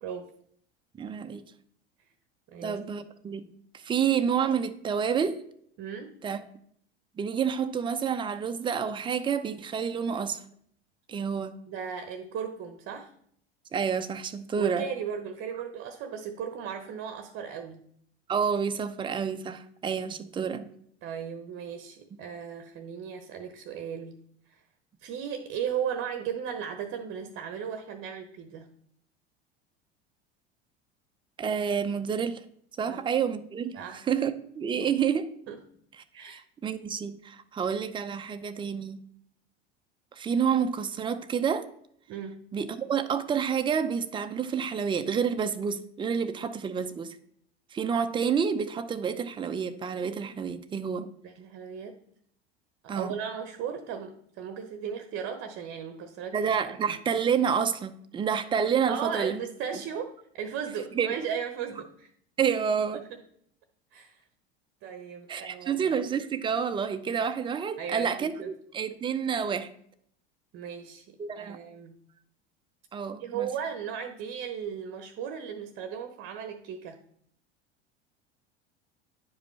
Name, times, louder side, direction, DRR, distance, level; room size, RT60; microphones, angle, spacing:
voice 1, 1.0-1.4 2.6-3.5 3.8-5.4 6.2-6.4 7.2-10.4 11.1-11.5 13.7-14.8 18.3-20.7 31.4-32.4 32.8-35.3 36.1-39.0 40.1-41.7 42.5-47.2 47.7-51.1 52.9-53.1 56.3-59.4 59.7-59.8 61.0-61.1 62.4-63.0 65.3-69.7 71.2-71.6 72.9-73.5, right 7 dB, 15° right, 10 dB, 0.5 m, -29 dB
voice 2, 2.5-2.8 5.8-6.2 11.7-13.1 14.6-17.8 21.0-24.1 24.5-24.6 25.0-28.7 32.9-33.0 33.7-34.0 34.8-34.9 35.5-35.6 36.1-36.4 42.1-42.4 51.2-52.0 52.8-56.4 56.9-57.0 58.9-62.1 62.9-63.2 63.9-64.2 64.8-65.8 67.8-68.5 70.5-72.0 73.2-77.0, right 7 dB, 40° right, 8 dB, 0.9 m, -36 dB
10.0 x 5.0 x 3.3 m, 0.67 s
figure-of-eight pair, 75°, 33 cm